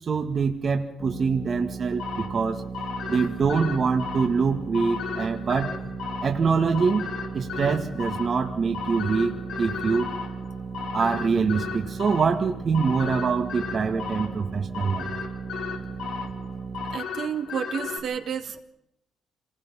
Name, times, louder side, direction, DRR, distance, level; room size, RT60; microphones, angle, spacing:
voice 1, 0.1-2.6 3.1-5.7 6.2-10.1 10.9-15.1, right 5 dB, 45° right, 3 dB, 2.0 m, -25 dB
sound 1, 1.0-17.0, right 5 dB, 20° right, 2.6 m, -36 dB
sound 2, 2.0-18.0, left 6 dB, 80° left, 4.9 m, -36 dB
voice 2, 16.9-18.6, right 8 dB, 65° right, 4 dB, 2.5 m, -31 dB
27.5 x 20.0 x 5.8 m, 0.81 s
cardioid pair, 90°, 0 cm